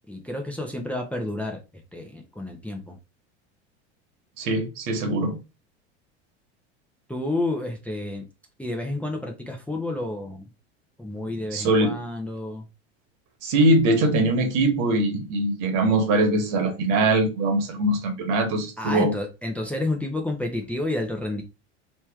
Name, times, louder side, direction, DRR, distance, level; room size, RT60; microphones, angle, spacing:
voice 1, 0.0-1.6 1.9-3.0 7.1-8.3 8.6-10.5 11.0-12.6 18.8-21.4, left 2 dB, 5° left, 0.8 m, -30 dB
voice 2, 4.4-5.4 11.5-11.9 13.4-19.1, right 2 dB, 60° right, 1.5 m, -22 dB
3.1 x 3.0 x 3.6 m
hypercardioid pair, 95°, 34 cm